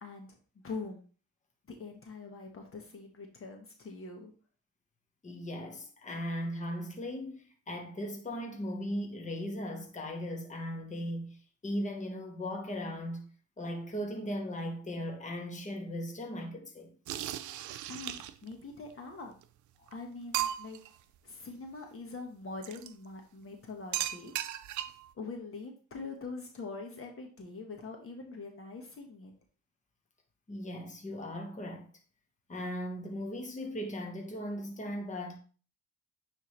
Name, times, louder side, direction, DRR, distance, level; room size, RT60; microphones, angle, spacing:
voice 1, 0.6-1.0 1.7-4.3 17.9-19.3 19.9-20.8 21.2-24.3 25.1-29.3, left 3 dB, 45° left, 1.4 m, -43 dB
voice 2, 5.2-13.3 13.6-16.9 19.8-19.9 30.5-31.9 32.5-35.4, equal, 25° left, 1.4 m, -38 dB
sound 1, 17.1-18.5 19.4-19.5 19.9-20.0 20.3-20.9 22.6-22.9 23.9-25.1, right 12 dB, 80° right, 0.5 m, -36 dB
8.9 x 3.6 x 3.2 m
cardioid pair, 90°, 30 cm